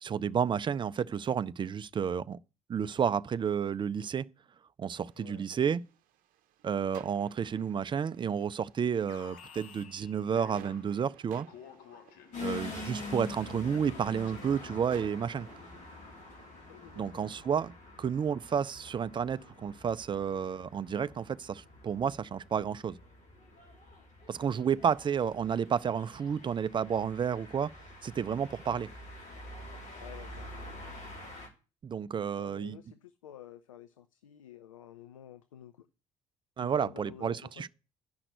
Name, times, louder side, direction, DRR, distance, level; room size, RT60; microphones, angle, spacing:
voice 1, 0.0-2.4 2.7-4.3 4.8-5.8 6.6-11.5 12.4-15.5 17.0-17.7 18.0-23.0 24.3-27.7 28.0-28.9 31.8-32.8 36.6-37.7, right 7 dB, 30° right, 0.5 m, -31 dB
sound 1, 5.1-17.0, right 11 dB, 55° right, 0.8 m, -57 dB
Alarm, 9.1-11.1 11.5-14.7, left 7 dB, 65° left, 1.2 m, -53 dB
sound 2, 12.3-31.5, left 2 dB, 45° left, 3.1 m, -46 dB
voice 2, 12.4-12.7 16.7-17.4 25.1-25.2 28.6-28.8 29.9-30.5 32.4-35.9 36.6-37.7, left 9 dB, 80° left, 0.5 m, -51 dB
10.5 x 5.9 x 7.8 m
figure-of-eight pair, 50°, 17 cm